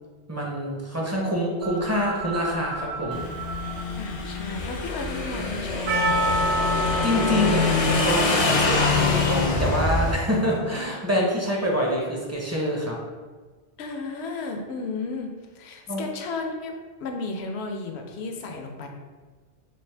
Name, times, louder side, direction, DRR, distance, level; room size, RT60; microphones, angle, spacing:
voice 1, 0.3-3.2 7.0-13.0 15.9-16.1, equal, 20° right, -2 dB, 0.5 m, -26 dB
sound 1, 1.6-9.7, right 4 dB, 90° right, 1.2 m, -39 dB
Motorcycle / Engine, 3.1-10.1, left 3 dB, 55° left, 0.4 m, -25 dB
voice 2, 4.0-6.8 13.8-18.9, left 3 dB, 85° left, 4 dB, 0.8 m, -34 dB
Percussion, 5.9-10.8, equal, 70° right, 0.8 m, -29 dB
3.3 x 3.1 x 3.2 m, 1.4 s
omnidirectional pair, 1.1 m